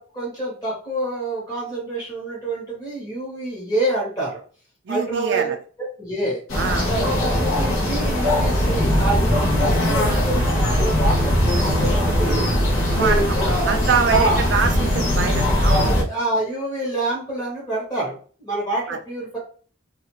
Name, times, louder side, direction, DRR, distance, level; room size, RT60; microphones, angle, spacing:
voice 1, 0.0-4.4 4.9-5.5 6.0-6.4 6.9-12.5 13.0-13.8 14.1-14.5 15.4-19.4, right 2 dB, 20° left, -5 dB, 1.1 m, -27 dB
voice 2, 4.9-5.6 6.6-6.9 13.0-13.2 13.7-15.9 18.9-19.0, right 6 dB, 60° right, 5 dB, 0.4 m, -24 dB
sound 1, 6.5-16.0, left 1 dB, 80° left, 0.8 m, -20 dB
2.4 x 2.3 x 3.0 m, 0.41 s
head